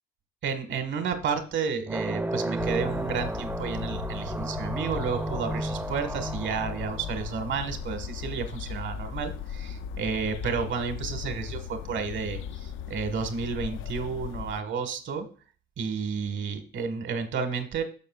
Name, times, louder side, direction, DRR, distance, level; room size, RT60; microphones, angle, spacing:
voice 1, 0.4-15.3 15.8-17.8, right 5 dB, 70° right, 8 dB, 1.6 m, -31 dB
sound 1, 1.9-8.0, right 2 dB, 10° right, 0.5 m, -33 dB
sound 2, 2.6-14.6, left 8 dB, 80° left, 0.5 m, -37 dB
11.5 x 6.8 x 2.4 m, 0.39 s
cardioid pair, 90°, 20 cm